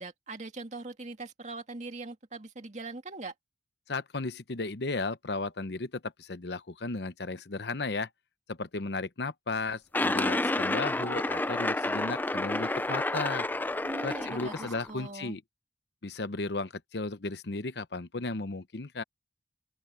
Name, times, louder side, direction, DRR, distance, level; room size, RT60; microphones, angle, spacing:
voice 1, 0.0-3.3 13.8-15.4, right 2 dB, 40° right, 2.2 m, -41 dB
voice 2, 3.9-8.1 8.5-13.5 14.0-15.4 16.0-19.0, left 3 dB, 70° left, 0.9 m, -35 dB
sound 1, 9.9-14.9, left 2 dB, 10° left, 0.4 m, -30 dB
open air
head